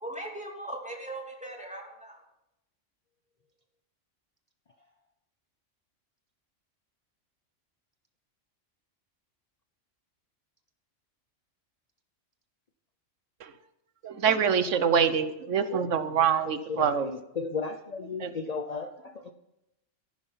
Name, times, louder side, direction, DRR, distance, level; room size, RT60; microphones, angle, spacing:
voice 1, 0.0-2.2, right 1 dB, 5° right, 0 dB, 3.0 m, -39 dB
voice 2, 14.0-17.1 18.2-18.3, right 7 dB, 75° right, 12 dB, 1.2 m, -25 dB
voice 3, 16.4-19.3, left 4 dB, 40° left, 7 dB, 0.7 m, -35 dB
14.0 x 11.5 x 5.6 m, 0.89 s
omnidirectional pair, 1.3 m